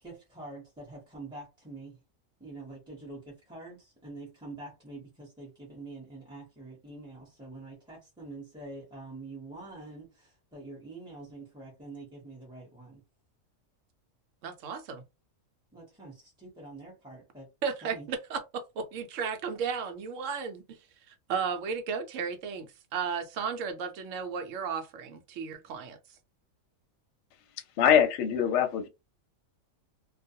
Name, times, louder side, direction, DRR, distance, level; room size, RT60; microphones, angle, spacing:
voice 1, 0.0-2.0 2.4-13.0 15.7-17.5 17.8-18.1, right 2 dB, 5° right, 0.6 m, -46 dB
voice 2, 14.4-15.0 17.6-20.8 21.1-26.0, right 6 dB, 70° right, 0.9 m, -34 dB
voice 3, 27.8-28.9, left 8 dB, 65° left, 0.8 m, -23 dB
2.4 x 2.2 x 2.6 m
omnidirectional pair, 1.4 m